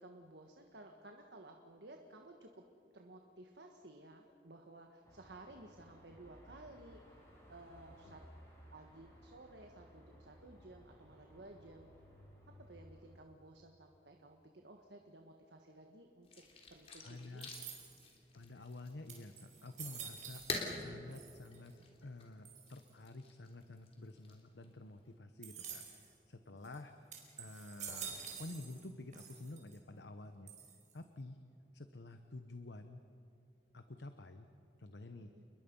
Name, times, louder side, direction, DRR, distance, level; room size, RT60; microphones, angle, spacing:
voice 1, 0.0-2.6 2.9-8.2 8.7-11.9 12.7-16.4 16.7-17.5 26.5-26.7 35.2-35.4, right 2 dB, 80° right, 3 dB, 1.5 m, -56 dB
Car passing by / Traffic noise roadway noise / Engine, 5.0-13.2, equal, 15° left, 6.2 m, -60 dB
sound 1, 16.2-25.2, left 3 dB, 35° left, 3.5 m, -49 dB
voice 2, 17.0-17.5 18.3-20.4 20.7-26.9 27.4-30.5 30.9-31.4 31.7-33.0 33.7-34.5 34.8-35.3, left 2 dB, 85° left, 8 dB, 1.0 m, -50 dB
sound 2, 17.4-18.1 18.7-18.8 19.1-20.8 21.1-21.7 22.4-22.9 25.4-26.1 26.6-26.8 27.1-28.9 29.1-29.8 30.5-31.0, right 7 dB, 45° right, 4.7 m, -49 dB
29.5 x 22.0 x 5.5 m, 2.7 s
head